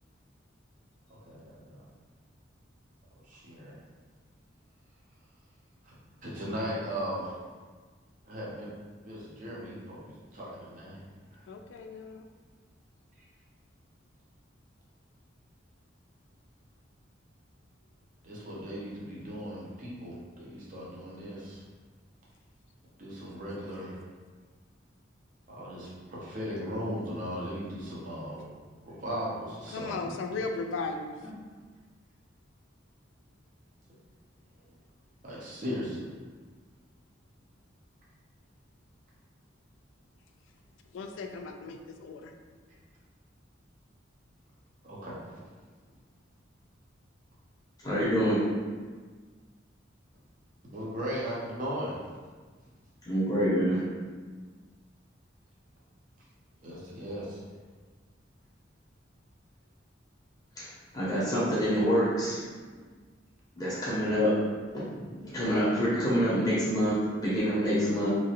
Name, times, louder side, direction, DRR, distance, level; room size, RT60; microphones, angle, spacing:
voice 1, 1.2-1.9 3.2-3.8 6.2-7.4 8.2-8.7 9.0-11.0 11.3-11.5 13.2-13.3 18.2-21.6 23.0-24.0 25.5-28.5 28.8-30.4 31.2-31.4 34.6-34.7 35.2-36.1 44.8-45.4 50.7-52.0 56.6-57.4, equal, 45° right, -6 dB, 0.6 m, -37 dB
voice 2, 11.5-12.2 29.7-31.1 40.9-42.3, left 3 dB, 80° left, 4 dB, 0.3 m, -36 dB
voice 3, 47.8-48.4 53.1-53.8 60.6-62.4 63.6-64.3 64.7-64.8 65.1-68.1, equal, 20° left, -9 dB, 0.7 m, -26 dB
3.0 x 2.4 x 2.8 m, 1.5 s
head